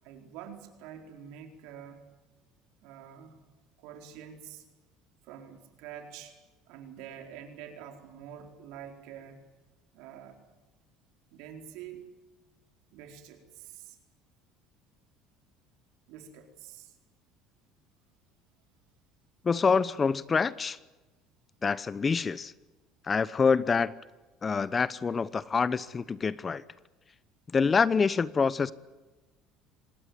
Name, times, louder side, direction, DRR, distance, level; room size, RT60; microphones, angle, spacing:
voice 1, 0.0-2.0 2.8-3.5 3.8-4.7 5.2-6.4 6.7-9.4 9.9-10.4 11.3-12.1 12.9-14.0 16.1-17.0, right 9 dB, 75° right, 4.4 m, -46 dB
voice 2, 19.4-20.8 21.6-22.5 23.0-23.9 24.4-26.6 27.5-28.7, left 5 dB, 30° left, 0.9 m, -26 dB
26.0 x 19.5 x 9.5 m
supercardioid pair, 80°, 0 cm